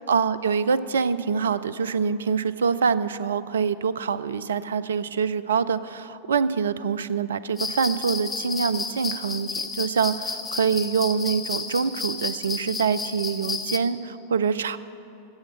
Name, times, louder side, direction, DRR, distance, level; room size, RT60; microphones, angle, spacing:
voice 1, 0.1-14.8, right 6 dB, 65° right, 16 dB, 0.4 m, -25 dB
sound 1, 7.6-13.8, left 5 dB, 15° left, 0.9 m, -32 dB
13.5 x 7.8 x 7.8 m, 2.9 s
figure-of-eight pair, 90°, 0 cm